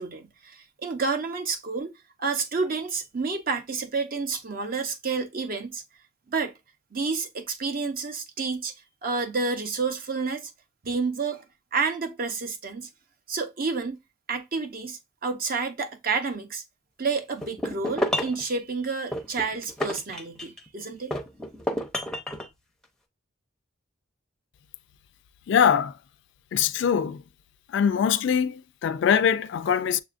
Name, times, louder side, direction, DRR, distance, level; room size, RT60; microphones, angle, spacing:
voice 1, 0.0-1.9 2.2-5.8 6.3-6.5 6.9-8.7 9.0-10.5 10.8-11.4 11.7-12.9 13.3-14.0 14.3-16.6 17.0-21.1, right 4 dB, 45° right, 0.7 m, -29 dB
sound 1, 17.4-18.4 19.1-20.7 21.1-22.5, equal, 5° left, 0.5 m, -30 dB
voice 2, 25.5-25.9 26.5-27.2 27.7-30.0, left 8 dB, 60° left, 0.3 m, -22 dB
6.7 x 2.4 x 2.5 m
head